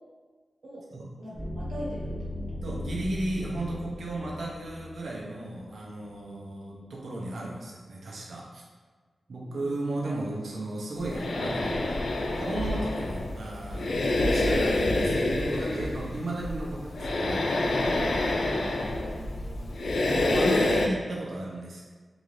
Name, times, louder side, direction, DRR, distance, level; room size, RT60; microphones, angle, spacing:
voice 1, 1.2-2.1 2.5-2.6 9.4-9.7 18.3-19.7, equal, 70° right, -7 dB, 1.3 m, -42 dB
sound 1, 1.3-5.9, left 1 dB, 15° left, 0.9 m, -37 dB
voice 2, 2.6-8.6 9.3-11.7 12.3-17.7 20.1-21.8, right 1 dB, 85° right, -3 dB, 0.8 m, -35 dB
sound 2, 11.0-20.9, left 2 dB, 75° left, 0.3 m, -27 dB
3.8 x 2.6 x 3.2 m, 1.4 s
wide cardioid pair, 135°, 0 cm